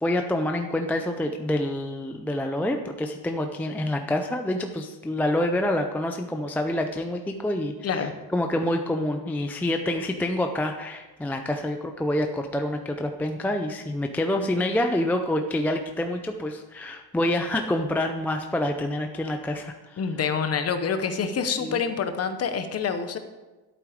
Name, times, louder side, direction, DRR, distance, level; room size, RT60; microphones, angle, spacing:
voice 1, 0.0-20.0 21.1-21.2 21.6-21.8, left 1 dB, 5° left, 4 dB, 0.4 m, -27 dB
voice 2, 20.0-23.2, left 6 dB, 35° left, 8 dB, 1.0 m, -27 dB
11.5 x 8.7 x 5.0 m, 1.2 s
cardioid pair, 160°, 44 cm